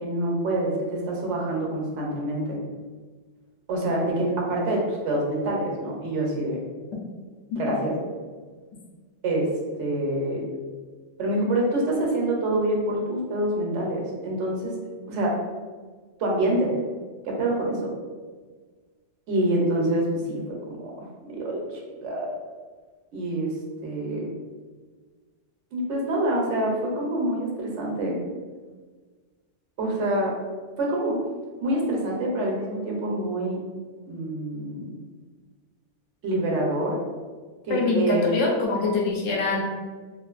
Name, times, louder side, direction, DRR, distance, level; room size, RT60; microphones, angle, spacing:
voice 1, 0.0-2.6 3.7-6.6 7.6-7.9 9.2-9.5 9.8-10.4 11.2-14.7 15.1-15.4 16.2-16.8 17.2-17.9 19.3-22.3 23.1-23.5 23.8-24.3 25.7-28.2 29.8-30.3 30.8-31.2 31.6-33.6 34.1-34.9 36.2-37.0 37.6-38.3, right 1 dB, 80° right, -2 dB, 0.9 m, -26 dB
voice 2, 37.7-39.6, left 3 dB, 80° left, -1 dB, 0.9 m, -24 dB
2.5 x 2.4 x 2.3 m, 1.4 s
omnidirectional pair, 1.2 m